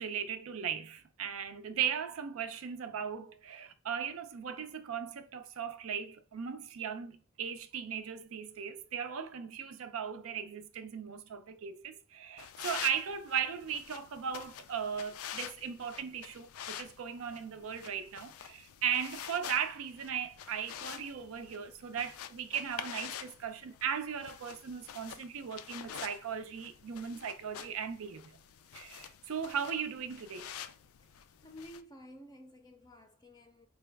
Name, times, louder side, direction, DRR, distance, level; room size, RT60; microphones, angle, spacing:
voice 1, 0.0-28.4 28.7-30.5, right 7 dB, 75° right, 0.4 m, -37 dB
sound 1, 12.4-31.8, left 9 dB, 85° left, 0.4 m, -47 dB
voice 2, 31.4-33.7, left 1 dB, 20° left, 0.5 m, -52 dB
4.6 x 2.3 x 3.3 m
head